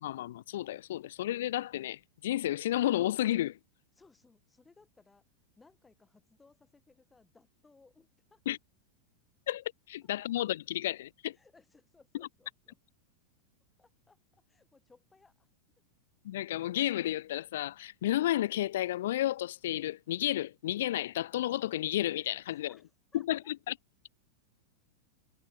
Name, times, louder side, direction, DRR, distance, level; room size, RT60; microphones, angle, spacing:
voice 1, 0.0-3.6 8.5-8.6 9.5-11.4 16.2-22.7 23.1-23.7, left 13 dB, 55° left, 0.5 m, -32 dB
voice 2, 3.9-5.3 5.6-8.4 11.3-12.8 13.8-15.5 22.5-23.5, left 3 dB, 10° left, 5.8 m, -63 dB
figure-of-eight pair, 90°, 0 cm